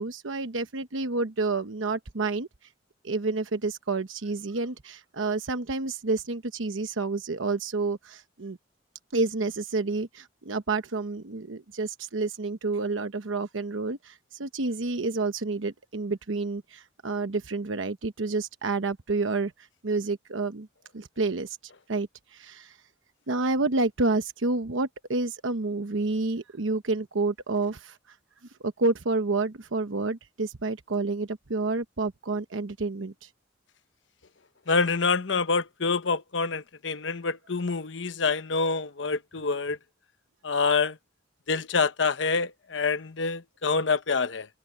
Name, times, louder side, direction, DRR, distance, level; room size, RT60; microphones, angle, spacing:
voice 1, 0.0-2.5 3.0-8.6 9.1-19.5 19.8-20.7 20.9-21.6 21.9-22.8 23.3-28.0 28.6-33.3, right 3 dB, 85° right, 1.0 m, -29 dB
voice 2, 34.7-39.8 40.4-41.0 41.5-44.5, left 4 dB, 65° left, 0.9 m, -26 dB
head